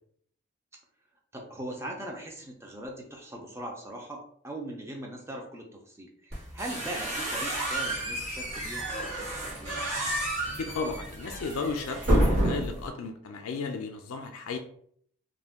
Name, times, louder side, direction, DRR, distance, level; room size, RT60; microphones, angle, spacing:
voice 1, 1.3-9.8, right 1 dB, 10° right, 0 dB, 0.4 m, -40 dB
sound 1, 6.3-12.9, right 1 dB, 65° right, 1.2 m, -30 dB
voice 2, 10.6-14.6, left 4 dB, 80° left, 5 dB, 0.4 m, -34 dB
2.5 x 2.1 x 3.4 m, 0.64 s
head